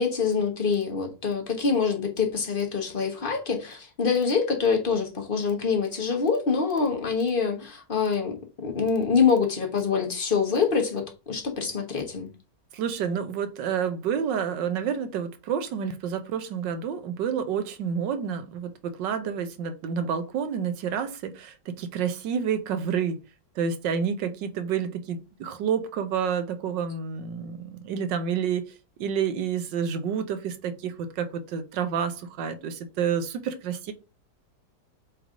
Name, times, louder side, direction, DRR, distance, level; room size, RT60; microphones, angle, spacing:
voice 1, 0.0-12.3, left 5 dB, 35° left, 1.2 m, -25 dB
voice 2, 12.7-23.2 23.6-28.6 29.0-33.9, right 7 dB, 90° right, 1.5 m, -29 dB
7.4 x 3.4 x 3.8 m
omnidirectional pair, 1.9 m